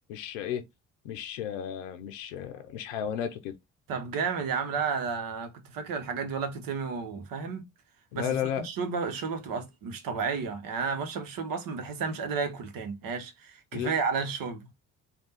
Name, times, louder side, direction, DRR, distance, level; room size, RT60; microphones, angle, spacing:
voice 1, 0.1-0.6 1.0-3.5 8.1-8.7 13.7-13.9, left 9 dB, 80° left, 0.6 m, -33 dB
voice 2, 3.9-7.7 8.1-8.4 8.6-14.7, right 5 dB, 60° right, 1.0 m, -32 dB
3.5 x 2.3 x 4.0 m
hypercardioid pair, 50°, 38 cm